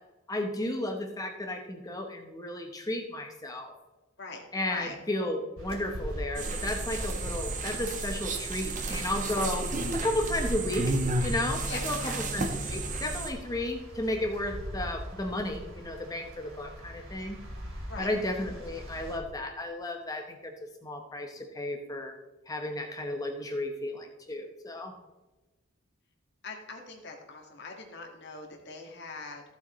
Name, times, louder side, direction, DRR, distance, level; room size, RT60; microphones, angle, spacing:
voice 1, 0.3-3.7 4.5-9.7 9.9-10.9 11.2-17.4 18.0-22.2 22.5-24.9, left 1 dB, 15° left, 3 dB, 0.9 m, -33 dB
sound 1, 5.6-19.2, equal, 90° right, 2.6 m, -42 dB
sound 2, 6.4-13.3, right 2 dB, 35° right, 1.1 m, -32 dB
voice 2, 11.7-12.2 17.9-18.1 26.4-29.4, left 3 dB, 55° left, 2 dB, 1.7 m, -42 dB
14.5 x 7.8 x 3.1 m, 1.1 s
head